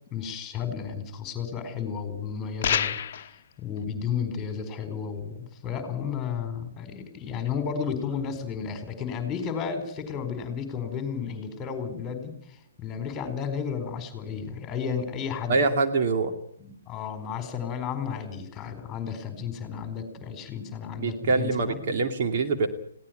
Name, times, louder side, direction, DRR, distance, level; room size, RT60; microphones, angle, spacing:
voice 1, 0.1-15.6 16.6-21.8, left 7 dB, 15° left, 9 dB, 4.6 m, -33 dB
sound 1, 2.6-3.3, left 8 dB, 45° left, 1.1 m, -26 dB
voice 2, 15.5-16.3 21.0-22.7, right 3 dB, 45° right, 5 dB, 2.5 m, -24 dB
21.5 x 17.0 x 9.2 m, 0.65 s
figure-of-eight pair, 130°, 0 cm